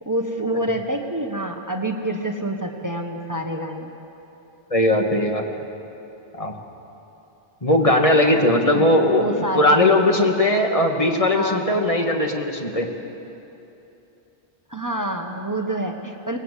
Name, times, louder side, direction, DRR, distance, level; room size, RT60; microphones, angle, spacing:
voice 1, 0.0-3.9 8.3-8.4 8.7-8.9 9.2-9.9 11.3-11.7 14.7-16.4, right 1 dB, 20° right, 3 dB, 1.3 m, -27 dB
voice 2, 4.7-5.4 6.3-6.5 7.6-12.9, left 1 dB, 35° left, 2 dB, 2.0 m, -19 dB
24.5 x 19.0 x 8.3 m, 2.9 s
omnidirectional pair, 1.1 m